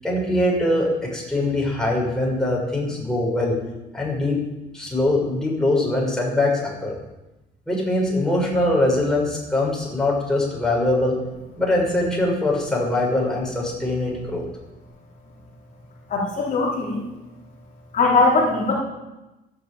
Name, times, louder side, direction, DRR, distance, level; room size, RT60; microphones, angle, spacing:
voice 1, 0.0-3.6 3.9-4.4 4.7-6.9 7.7-11.2 11.6-14.5, left 1 dB, 5° left, -3 dB, 6.8 m, -22 dB
voice 2, 16.1-17.1 17.9-18.8, left 3 dB, 50° left, -4 dB, 4.1 m, -20 dB
13.5 x 10.5 x 8.8 m, 1.0 s
cardioid pair, 110°, 17 cm